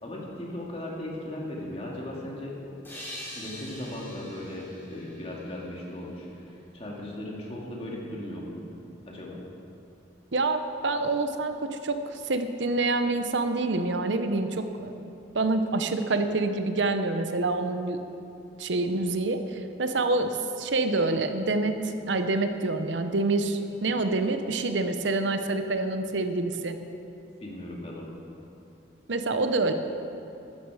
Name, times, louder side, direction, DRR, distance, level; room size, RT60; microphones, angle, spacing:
voice 1, 0.0-2.5 3.3-8.6 9.1-9.4 27.4-28.2, left 1 dB, 30° left, -3 dB, 2.2 m, -37 dB
sound 1, 2.8-6.3, left 1 dB, 10° left, 3.9 m, -44 dB
voice 2, 10.3-15.0 15.3-18.0 18.6-26.8 29.1-29.7, right 2 dB, 75° right, 8 dB, 0.8 m, -27 dB
14.0 x 12.5 x 4.9 m, 2.8 s
head